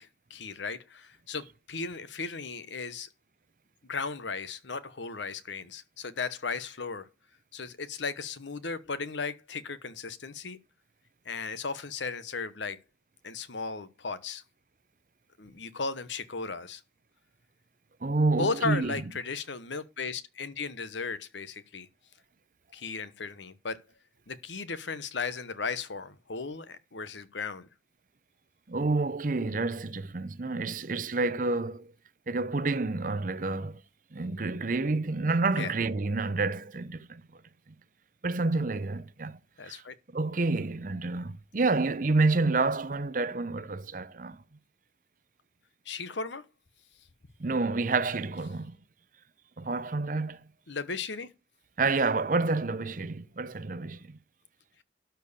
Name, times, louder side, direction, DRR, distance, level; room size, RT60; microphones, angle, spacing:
voice 1, 0.0-3.1 3.8-7.1 7.5-10.6 11.2-12.8 13.2-14.4 15.4-16.8 18.3-21.9 22.7-23.8 24.3-27.7 35.6-35.7 39.6-39.9 45.8-46.4 50.7-51.3, left 4 dB, 80° left, 1.1 m, -36 dB
voice 2, 18.0-18.9 28.7-31.9 32.3-33.8 34.1-37.2 38.2-39.8 40.1-44.4 47.4-48.8 49.6-50.4 51.8-54.2, right 3 dB, 45° right, 0.7 m, -29 dB
12.5 x 4.6 x 6.7 m
head